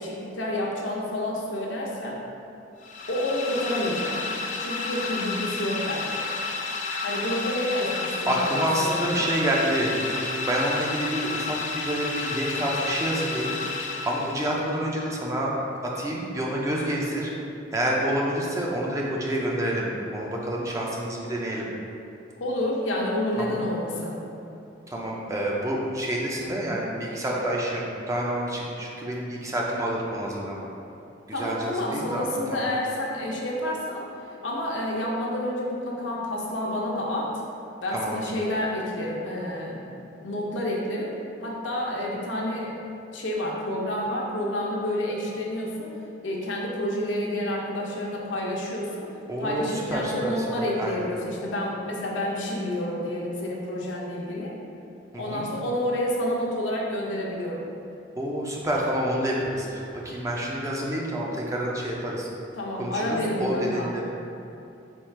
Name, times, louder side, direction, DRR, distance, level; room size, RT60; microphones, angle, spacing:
voice 1, 0.0-2.2 3.1-4.1 4.6-6.2 7.0-9.3 22.4-24.2 31.3-34.0 34.4-37.3 37.8-39.9 40.2-41.1 41.4-42.8 43.1-45.9 46.2-49.0 49.4-54.5 55.1-57.6 62.5-63.9, left 1 dB, 80° left, -3 dB, 0.8 m, -29 dB
sound 1, 2.8-14.7, left 4 dB, 40° left, 0.4 m, -31 dB
voice 2, 8.2-13.5 14.1-15.5 15.9-17.3 17.7-21.7 23.4-23.6 24.9-30.7 31.3-32.6 37.9-38.2 49.3-50.9 55.1-55.5 58.2-62.3 62.8-64.0, right 1 dB, 15° right, -3 dB, 0.5 m, -28 dB
4.4 x 2.4 x 4.5 m, 2.7 s
head